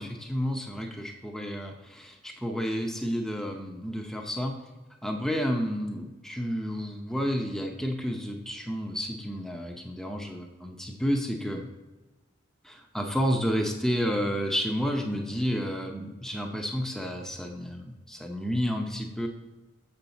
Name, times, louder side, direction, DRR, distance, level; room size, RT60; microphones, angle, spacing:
voice 1, 0.0-4.6 5.0-11.7 12.6-19.3, equal, ahead, 2 dB, 0.6 m, -31 dB
7.0 x 6.7 x 4.0 m, 1.2 s
head